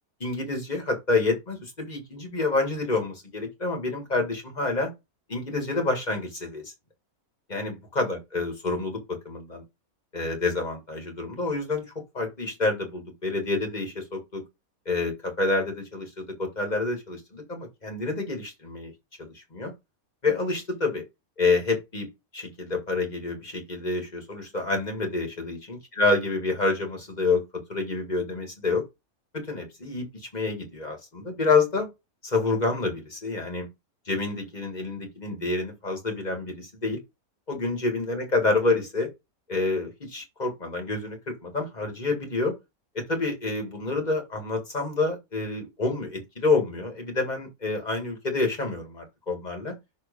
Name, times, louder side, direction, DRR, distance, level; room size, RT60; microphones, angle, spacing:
voice 1, 0.2-4.9 5.3-6.7 7.5-9.6 10.1-14.4 14.9-18.9 19.2-19.7 20.2-21.0 21.4-25.6 26.0-27.4 27.7-28.8 29.3-31.9 32.2-33.7 34.1-37.0 37.5-39.1 39.5-42.5 42.9-49.8, left 3 dB, 30° left, 2.2 m, -28 dB
6.7 x 4.0 x 5.4 m
omnidirectional pair, 1.5 m